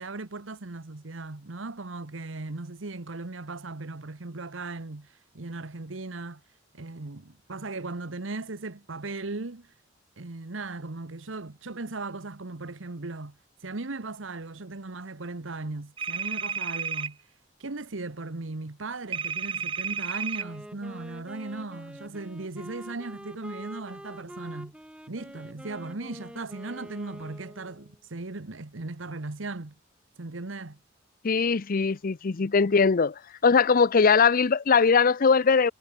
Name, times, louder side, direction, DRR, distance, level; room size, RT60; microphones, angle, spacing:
voice 1, 0.0-5.1 5.3-6.4 6.7-9.7 10.2-13.4 13.6-17.2 17.6-24.7 25.1-29.7 30.2-30.8, right 3 dB, 80° right, 1.3 m, -37 dB
sound 1, 16.0-17.1 19.1-20.4, right 7 dB, 25° right, 0.5 m, -31 dB
Wind instrument woodwind instrument, 20.3-28.0, equal, 5° right, 1.2 m, -45 dB
voice 2, 31.2-33.1 33.4-35.7, left 5 dB, 45° left, 0.6 m, -21 dB
head